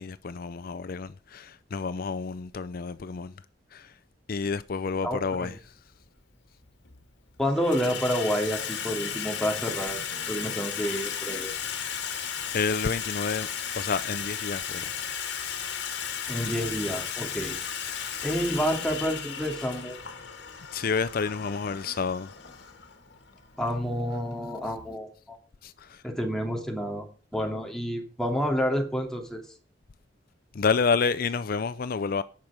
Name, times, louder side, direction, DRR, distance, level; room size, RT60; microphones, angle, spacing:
voice 1, 0.0-3.3 3.7-3.9 4.3-5.5 12.0-12.3 12.5-13.5 13.8-14.9 20.7-22.3 25.6-26.0 30.5-32.2, left 5 dB, 55° left, 0.5 m, -29 dB
voice 2, 5.0-5.5 7.4-11.5 16.3-17.6 18.2-20.0 23.6-25.4 26.0-27.1 27.3-29.4, equal, 5° left, 2.5 m, -29 dB
Water tap faucet / Sink (filling or washing), 5.6-5.7 6.6-7.0 7.3-24.9, left 8 dB, 85° left, 2.2 m, -35 dB
18.0 x 6.2 x 4.9 m
head